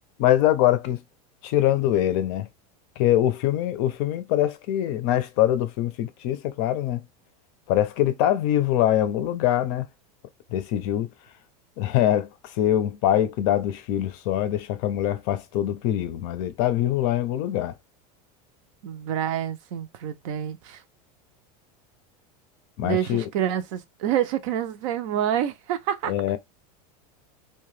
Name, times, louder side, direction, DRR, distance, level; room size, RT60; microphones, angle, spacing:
voice 1, 0.2-1.0 1.4-2.5 3.0-7.0 7.7-9.9 10.5-11.1 11.8-17.8 22.8-23.3 26.1-26.4, left 12 dB, 45° left, 0.5 m, -23 dB
voice 2, 18.8-20.8 22.8-26.1, right 10 dB, 55° right, 0.5 m, -27 dB
2.8 x 2.2 x 3.1 m
supercardioid pair, 165°, 20 cm